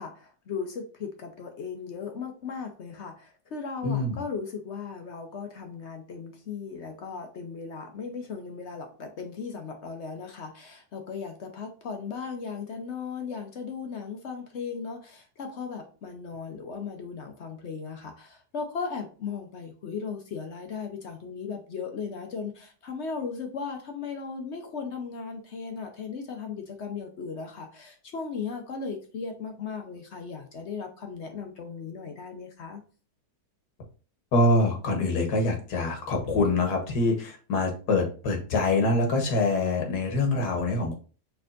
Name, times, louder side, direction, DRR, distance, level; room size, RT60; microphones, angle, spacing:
voice 1, 0.0-32.8, left 5 dB, 55° left, 4 dB, 0.8 m, -37 dB
voice 2, 3.8-4.2 34.3-41.0, left 2 dB, 80° left, 2 dB, 1.7 m, -25 dB
6.1 x 3.4 x 2.5 m, 0.38 s
omnidirectional pair, 1.7 m